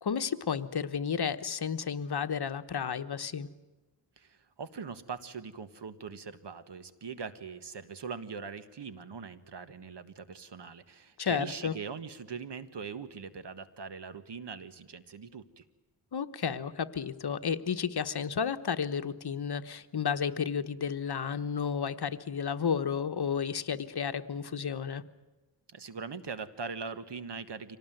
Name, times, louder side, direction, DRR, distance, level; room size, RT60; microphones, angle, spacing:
voice 1, 0.0-3.5 11.2-11.7 16.1-25.0, left 7 dB, 65° left, 10 dB, 1.2 m, -32 dB
voice 2, 4.2-15.6 25.7-27.8, right 5 dB, 70° right, 12 dB, 1.7 m, -41 dB
25.5 x 19.0 x 9.2 m, 1.2 s
wide cardioid pair, 90°, 43 cm